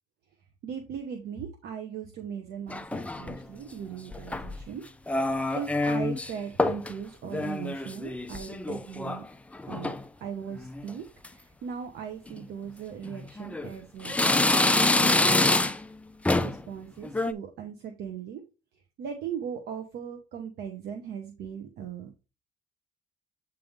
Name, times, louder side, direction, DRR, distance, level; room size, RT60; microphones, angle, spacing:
voice 1, 0.6-4.8 5.5-9.2 9.6-15.4 16.4-18.4 19.0-22.1, right 8 dB, 70° right, 5 dB, 1.2 m, -38 dB
sound 1, 2.7-3.4 4.1-4.6 5.1-6.3 6.6-6.9 7.3-9.2 9.5-10.0 10.6-10.9 11.2-11.3 12.3-12.4 13.1-13.7 14.0-15.9 16.3-16.6 17.0-17.3, left 2 dB, 10° left, 0.5 m, -26 dB
8.7 x 3.5 x 3.6 m, 0.29 s
cardioid pair, 110°, 17 cm